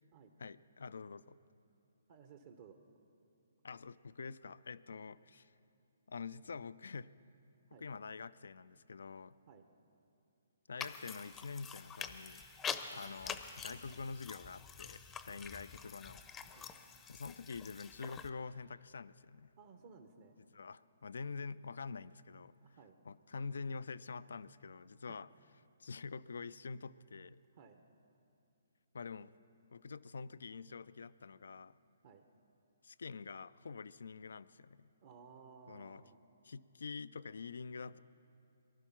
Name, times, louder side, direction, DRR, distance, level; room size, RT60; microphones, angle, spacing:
voice 1, 0.4-1.4 3.6-5.5 6.1-7.1 7.8-9.3 10.7-12.4 12.9-16.2 17.1-19.5 20.5-22.5 23.0-25.3 25.8-27.4 28.9-29.3 29.7-31.8 32.8-34.9 35.7-36.0 36.4-38.0, left 4 dB, 70° left, 17 dB, 0.3 m, -46 dB
voice 2, 2.1-2.8 4.9-5.0 7.7-7.9 9.5-9.6 12.6-12.8 15.3-15.4 16.5-16.7 19.6-20.4 22.6-23.0 25.1-25.2 27.5-27.8 32.0-32.2 35.0-36.2, right 6 dB, 50° right, 6 dB, 0.9 m, -58 dB
sound 1, 10.8-18.3, left 7 dB, 15° left, 0.6 m, -46 dB
19.5 x 11.5 x 5.9 m, 2.6 s
hypercardioid pair, 135°, 0 cm